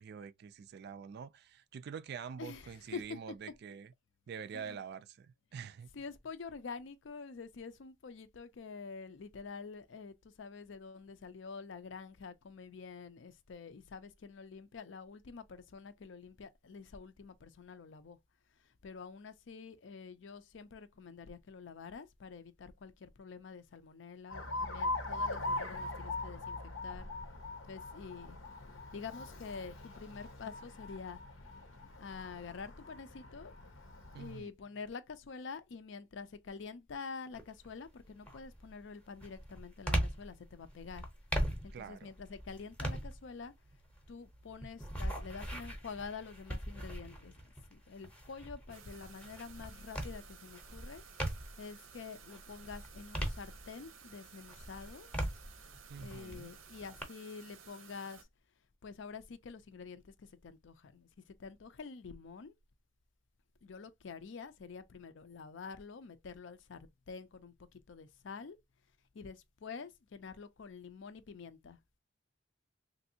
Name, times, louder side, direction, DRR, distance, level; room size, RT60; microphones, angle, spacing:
voice 1, 0.0-3.9 4.3-5.9 34.1-34.5 41.7-42.1 55.9-56.5, right 6 dB, 55° right, 0.3 m, -46 dB
voice 2, 6.0-18.2 18.8-26.6 26.8-27.1 27.7-28.4 28.9-31.2 32.0-33.5 34.2-41.0 41.6-43.5 44.1-47.3 47.7-51.0 51.6-55.1 55.9-58.2 58.8-60.0 60.4-61.1 61.4-62.5 63.6-66.8 67.1-67.5 67.9-68.6 69.1-71.8, left 5 dB, 65° left, 0.5 m, -47 dB
Alarm, 24.3-34.4, left 2 dB, 90° left, 0.9 m, -41 dB
sound 1, 37.3-37.7 38.2-51.7 52.2-54.0 54.4-57.0, equal, 5° left, 0.7 m, -40 dB
sound 2, 48.7-58.2, right 7 dB, 90° right, 0.6 m, -56 dB
3.3 x 2.6 x 2.6 m
head